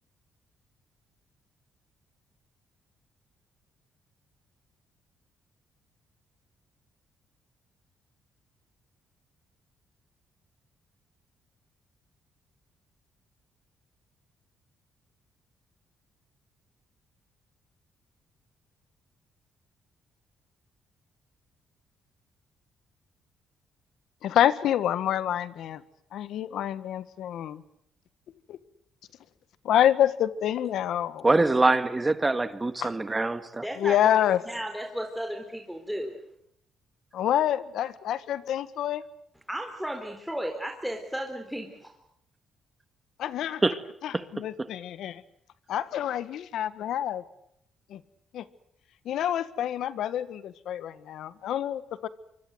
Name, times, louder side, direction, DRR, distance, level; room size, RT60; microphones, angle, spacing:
voice 1, 24.2-25.8 26.1-27.6 28.5-28.6 29.6-31.3 32.8-32.9 33.8-34.4 37.1-39.0 43.2-43.6 44.0-45.2 45.7-47.2 47.9-48.0 48.3-48.5 49.0-52.1, left 11 dB, 75° left, 14 dB, 1.5 m, -27 dB
voice 2, 31.2-33.6 43.6-43.8 44.1-44.3, right 2 dB, 20° right, 11 dB, 1.8 m, -24 dB
voice 3, 33.6-34.0 34.5-36.2 39.5-41.9, equal, ahead, 3 dB, 3.9 m, -34 dB
25.5 x 24.5 x 8.0 m, 0.74 s
cardioid pair, 90°, 0 cm